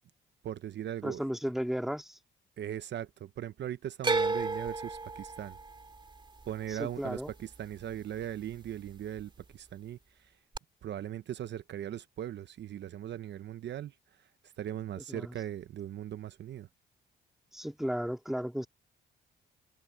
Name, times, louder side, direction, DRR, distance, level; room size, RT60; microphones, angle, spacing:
voice 1, 0.4-1.2 2.6-5.6 6.5-10.4 10.8-16.7, right 11 dB, 65° right, 0.9 m, -39 dB
voice 2, 1.0-2.2 6.8-7.3 15.1-15.3 17.5-18.7, equal, ahead, 2.5 m, -34 dB
sound 1, 4.0-8.2 8.5-9.2 10.5-10.6, right 3 dB, 25° right, 2.7 m, -34 dB
cardioid pair, 90°, 20 cm